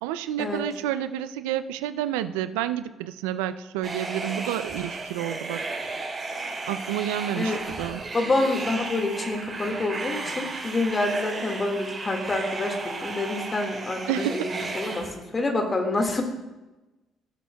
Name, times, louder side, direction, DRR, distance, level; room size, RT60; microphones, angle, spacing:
voice 1, 0.0-5.6 6.7-8.0 14.1-14.5, right 11 dB, 85° right, 12 dB, 0.4 m, -29 dB
sound 1, 3.8-15.1, right 3 dB, 40° right, 3.3 m, -34 dB
voice 2, 8.1-16.2, left 2 dB, 35° left, 3 dB, 1.9 m, -27 dB
16.5 x 7.6 x 2.3 m, 1.1 s
hypercardioid pair, 60°, 0 cm